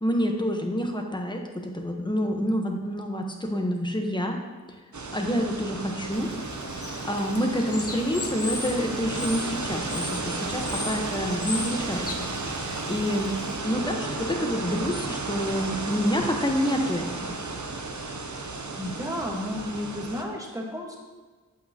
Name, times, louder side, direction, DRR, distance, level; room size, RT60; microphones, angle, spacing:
voice 1, 0.0-4.4 5.1-6.3 7.0-12.6 12.9-17.4, equal, 15° left, 2 dB, 1.1 m, -28 dB
sound 1, 4.9-20.2, right 3 dB, 65° right, 0.8 m, -33 dB
Bird / Water, 6.1-13.6, left 2 dB, 45° left, 1.0 m, -37 dB
voice 2, 18.8-21.0, left 1 dB, 10° right, -1 dB, 1.4 m, -32 dB
8.3 x 8.1 x 2.9 m, 1.4 s
wide cardioid pair, 45°, 32 cm